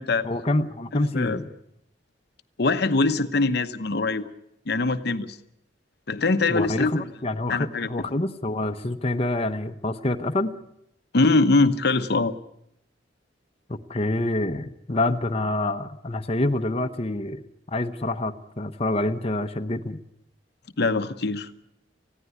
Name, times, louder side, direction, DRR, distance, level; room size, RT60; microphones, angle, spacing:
voice 1, 0.2-1.5 6.5-10.5 13.7-17.4 17.7-20.0, left 2 dB, 35° left, 6 dB, 0.9 m, -27 dB
voice 2, 0.9-1.4 2.6-4.3 4.7-5.4 6.1-7.0 7.5-7.9 11.1-12.3 20.8-21.5, left 3 dB, 65° left, 9 dB, 0.9 m, -23 dB
20.0 x 15.5 x 9.4 m, 0.77 s
head